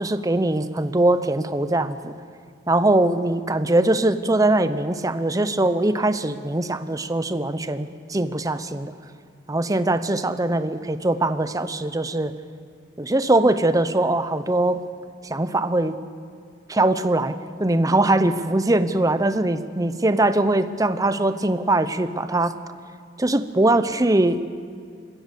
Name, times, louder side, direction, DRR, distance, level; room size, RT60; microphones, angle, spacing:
voice 1, 0.0-2.1 2.7-8.9 9.5-12.3 13.0-14.8 15.2-16.0 16.7-22.6 23.2-24.5, right 2 dB, 20° right, 11 dB, 0.8 m, -21 dB
21.5 x 16.0 x 8.3 m, 2.2 s
head